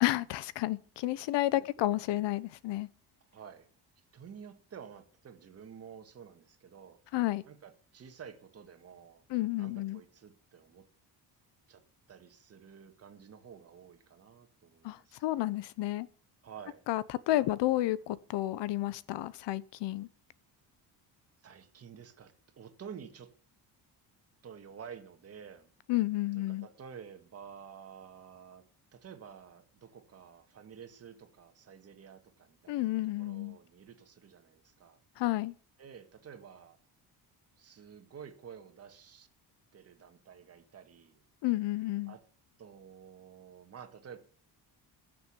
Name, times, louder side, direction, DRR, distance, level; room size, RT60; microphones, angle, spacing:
voice 1, 0.0-2.9 7.1-7.4 9.3-10.0 14.8-16.1 16.9-20.1 25.9-26.7 32.7-33.6 35.2-35.5 41.4-42.1, left 16 dB, 80° left, 0.9 m, -31 dB
voice 2, 1.5-2.3 3.3-3.7 4.1-9.3 9.5-10.9 11.7-11.8 12.1-15.2 16.4-16.9 17.3-17.5 21.4-23.3 24.4-25.7 26.3-28.6 28.9-35.0 35.8-36.8 37.6-39.3 39.7-41.2 42.1-42.2 42.6-44.2, right 7 dB, 35° right, 1.8 m, -51 dB
15.0 x 7.0 x 7.0 m
cardioid pair, 175°, 41 cm